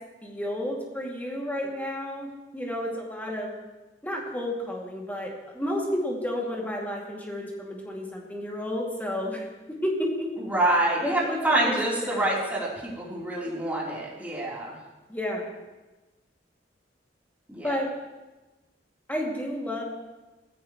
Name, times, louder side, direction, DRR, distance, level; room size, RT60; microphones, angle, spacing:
voice 1, 0.2-3.5 4.0-9.4 9.8-10.3 11.0-11.8 12.0-12.3 15.1-15.5 17.6-17.9 19.1-19.8, left 1 dB, 10° left, -2 dB, 2.5 m, -31 dB
voice 2, 10.5-14.7 17.5-17.8, right 1 dB, 10° right, -6 dB, 3.7 m, -26 dB
18.5 x 15.0 x 3.2 m, 1.1 s
head